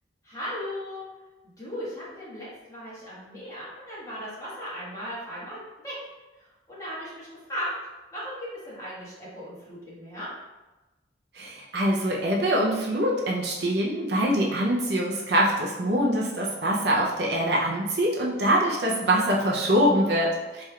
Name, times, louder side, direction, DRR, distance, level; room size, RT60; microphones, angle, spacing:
voice 1, 0.2-1.0 1.6-5.9 6.4-7.7 8.1-10.3, equal, 20° left, -9 dB, 1.4 m, -37 dB
voice 2, 11.3-20.6, equal, 60° right, -3 dB, 0.5 m, -24 dB
4.2 x 3.3 x 2.3 m, 1.1 s
head